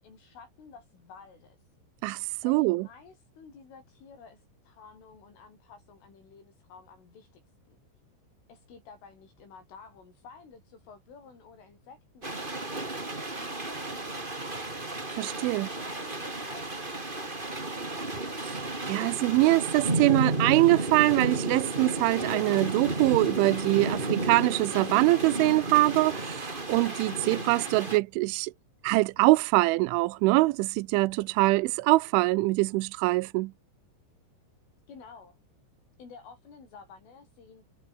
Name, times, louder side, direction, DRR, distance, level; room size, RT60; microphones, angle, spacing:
voice 1, 0.0-1.8 2.4-7.8 8.5-18.0 34.9-35.4 36.0-37.6, left 5 dB, 80° left, 10.5 m, -52 dB
voice 2, 2.0-2.8 15.1-15.7 18.4-28.5 28.8-33.5, right 21 dB, 85° right, 3.0 m, -24 dB
sound 1, 12.2-28.0, right 2 dB, 15° right, 2.3 m, -32 dB
omnidirectional pair, 5.6 m